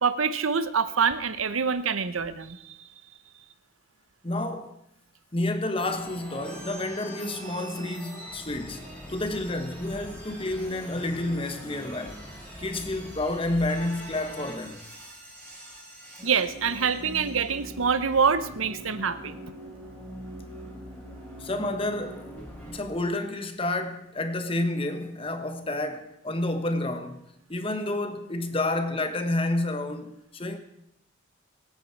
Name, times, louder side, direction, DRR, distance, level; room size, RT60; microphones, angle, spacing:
voice 1, 0.0-2.8 16.2-19.4, right 6 dB, 85° right, 0.9 m, -25 dB
voice 2, 4.2-4.7 5.3-12.2 12.6-14.8 21.4-22.3 22.7-27.2 27.5-30.6, left 2 dB, 25° left, 1.2 m, -30 dB
sound 1, 5.8-22.8, equal, 5° left, 3.5 m, -42 dB
23.5 x 9.1 x 4.6 m
head